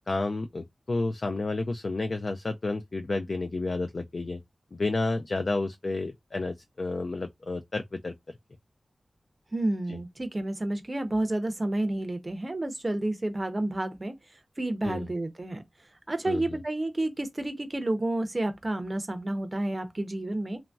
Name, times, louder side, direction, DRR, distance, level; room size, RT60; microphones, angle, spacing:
voice 1, 0.1-4.4 4.7-8.1 9.9-10.0 14.8-15.1 16.2-16.6, left 3 dB, 55° left, 0.3 m, -31 dB
voice 2, 9.5-14.2 14.6-15.6 16.1-20.6, right 1 dB, 30° right, 0.5 m, -30 dB
3.0 x 2.5 x 2.2 m
wide cardioid pair, 90°, 0 cm